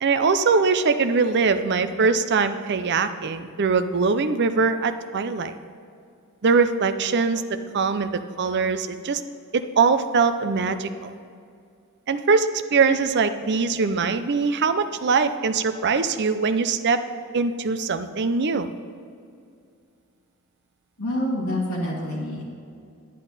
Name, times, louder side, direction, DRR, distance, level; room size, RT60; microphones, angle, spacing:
voice 1, 0.0-5.5 6.4-7.4 7.7-9.2 9.5-11.1 12.1-17.0 17.3-18.7, right 4 dB, 50° right, 10 dB, 0.5 m, -22 dB
voice 2, 21.0-22.5, left 1 dB, 75° left, -5 dB, 2.2 m, -27 dB
10.0 x 9.9 x 4.1 m, 2.4 s
head